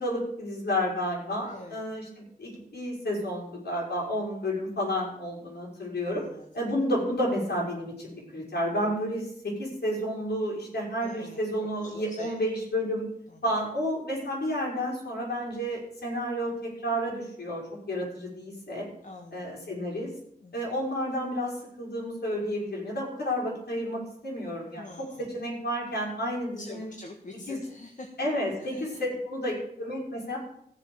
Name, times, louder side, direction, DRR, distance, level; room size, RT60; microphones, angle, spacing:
voice 1, 0.0-6.2 6.5-13.0 13.4-18.9 19.3-20.1 20.5-26.9 27.5-27.6 28.2-30.4, equal, 80° left, -4 dB, 5.6 m, -31 dB
voice 2, 1.4-1.8 6.1-6.5 11.0-11.4 11.8-12.4 13.3-13.4 19.0-19.4 20.4-20.5 24.7-25.3 26.6-28.1 28.6-29.0, left 2 dB, 50° left, 2 dB, 1.6 m, -45 dB
15.0 x 7.3 x 7.0 m, 0.71 s
wide cardioid pair, 120°, 17 cm